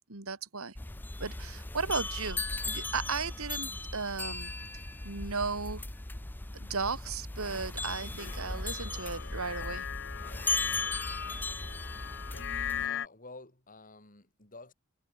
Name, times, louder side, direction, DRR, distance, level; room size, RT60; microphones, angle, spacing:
voice 1, 0.1-0.8 1.2-4.5 5.0-5.8 6.5-9.9, right 4 dB, 70° right, 2.2 m, -35 dB
sound 1, 0.8-12.9, left 2 dB, 10° left, 0.4 m, -37 dB
sound 2, 8.2-13.1, left 9 dB, 55° left, 1.2 m, -39 dB
voice 2, 12.8-14.7, left 3 dB, 40° left, 6.3 m, -50 dB
head